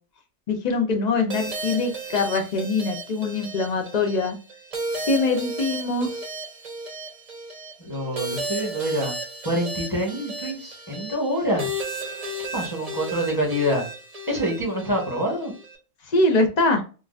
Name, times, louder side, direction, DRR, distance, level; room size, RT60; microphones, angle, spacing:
voice 1, 0.5-4.4 5.0-6.2 16.1-16.8, left 3 dB, 45° left, 4 dB, 0.5 m, -23 dB
sound 1, 1.3-15.8, right 1 dB, 35° right, 0.7 m, -34 dB
voice 2, 7.8-9.2 9.4-11.7 12.5-13.8 14.3-15.5, equal, 15° left, -3 dB, 1.2 m, -26 dB
4.0 x 2.4 x 2.4 m, 0.35 s
omnidirectional pair, 1.5 m